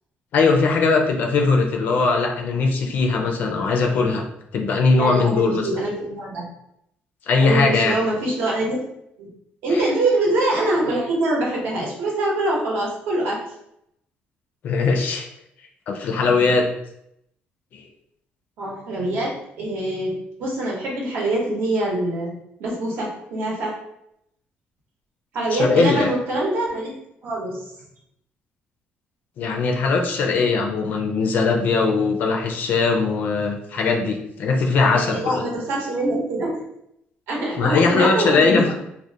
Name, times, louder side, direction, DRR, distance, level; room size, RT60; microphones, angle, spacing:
voice 1, 0.3-4.2 4.5-5.7 7.3-8.0 9.7-9.9 14.6-15.3 15.9-16.6 17.7-17.8 25.5-26.1 29.4-35.4 37.6-38.7, left 4 dB, 50° left, 2 dB, 0.4 m, -20 dB
voice 2, 5.0-6.5 7.4-8.8 9.2-9.3 9.6-13.4 18.6-22.3 22.6-23.7 25.3-26.9 27.2-27.6 34.9-36.6 37.3-38.6, right 1 dB, 75° right, -3 dB, 0.8 m, -24 dB
2.4 x 2.0 x 2.6 m, 0.78 s
cardioid pair, 170°, 4 cm